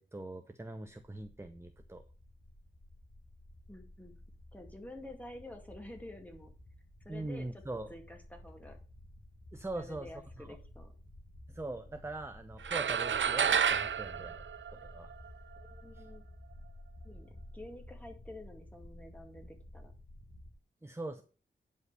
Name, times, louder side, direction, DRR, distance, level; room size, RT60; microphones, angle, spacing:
voice 1, 0.0-2.0 7.1-7.9 9.5-10.1 10.4-10.5 11.5-14.4 14.7-15.1 15.9-16.0 20.8-21.2, right 2 dB, 15° right, 7 dB, 0.7 m, -42 dB
sound 1, 0.9-20.5, left 1 dB, 50° left, 2.0 m, -53 dB
voice 2, 3.7-4.2 4.5-6.5 7.0-7.6 7.9-8.8 9.7-10.9 15.6-16.2 17.0-19.9, left 1 dB, 5° left, 3 dB, 2.2 m, -49 dB
sound 2, 12.6-15.3, right 7 dB, 75° right, 0.5 m, -30 dB
9.6 x 5.3 x 6.7 m, 0.37 s
wide cardioid pair, 115°, 20 cm